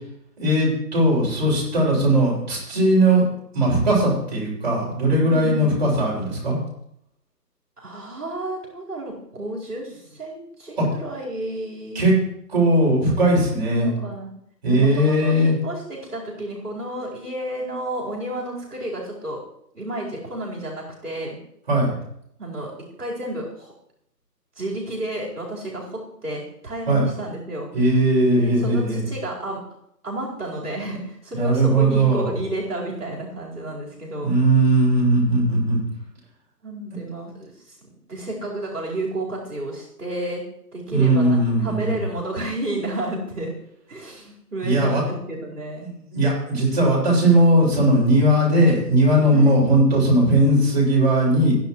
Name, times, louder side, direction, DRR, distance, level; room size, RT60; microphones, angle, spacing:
voice 1, 0.4-3.2 3.5-6.6 10.8-10.9 11.9-12.1 12.5-13.9 14.6-15.5 21.7-21.9 26.9-27.0 27.7-29.0 31.3-32.3 34.2-35.8 40.9-42.0 44.6-45.0 45.8-51.5, right 1 dB, 30° right, -6 dB, 6.7 m, -18 dB
voice 2, 5.2-5.8 7.8-12.0 13.7-14.3 14.7-19.4 19.7-21.3 22.4-22.7 23.0-23.7 24.6-27.7 28.3-29.6 30.0-34.3 36.6-37.8 38.1-40.4 40.7-43.5 43.9-45.9 49.3-49.6, right 1 dB, 65° right, -4 dB, 4.7 m, -31 dB
25.5 x 10.5 x 3.2 m, 0.74 s
figure-of-eight pair, 170°, 49 cm